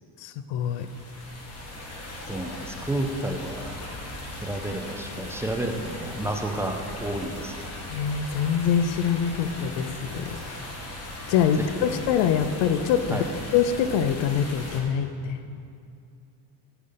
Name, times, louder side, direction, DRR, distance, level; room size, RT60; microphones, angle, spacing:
voice 1, 0.2-0.9 7.9-10.4 11.3-13.2 13.5-15.4, left 8 dB, 65° left, 9 dB, 0.7 m, -24 dB
sound 1, 0.6-14.8, left 1 dB, 30° left, 1.8 m, -38 dB
voice 2, 2.3-3.7 4.4-7.7 11.6-11.9 13.1-13.2, right 1 dB, 5° right, 3 dB, 0.6 m, -31 dB
14.0 x 5.1 x 5.6 m, 2.5 s
cardioid pair, 140°, 48 cm